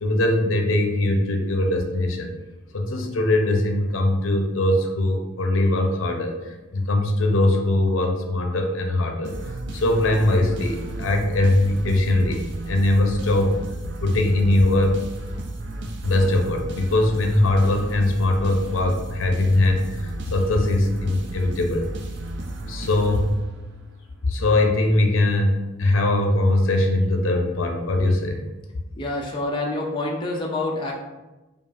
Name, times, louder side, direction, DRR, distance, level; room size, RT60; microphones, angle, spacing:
voice 1, 0.0-2.3 2.7-9.3 9.7-13.6 14.0-15.0 16.0-21.9 22.7-23.3 24.2-28.4, left 1 dB, 75° left, 3 dB, 0.6 m, -21 dB
sound 1, 9.2-23.8, right 1 dB, 55° right, 0.4 m, -33 dB
voice 2, 29.0-30.9, left 2 dB, 25° left, -1 dB, 0.4 m, -27 dB
5.1 x 2.4 x 2.5 m, 1.1 s
head